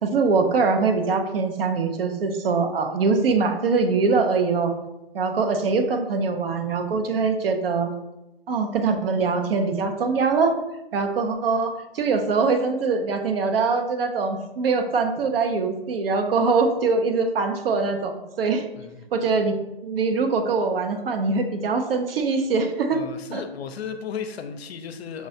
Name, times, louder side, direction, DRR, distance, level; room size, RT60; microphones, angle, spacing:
voice 1, 0.0-4.8 5.1-7.9 8.5-10.6 10.9-18.6 19.1-19.5 19.8-23.0 23.3-23.4, right 4 dB, 65° right, 6 dB, 0.6 m, -23 dB
voice 2, 22.9-25.3, left 6 dB, 80° left, 9 dB, 0.5 m, -34 dB
5.9 x 2.1 x 2.7 m, 0.96 s
hypercardioid pair, 150°, 31 cm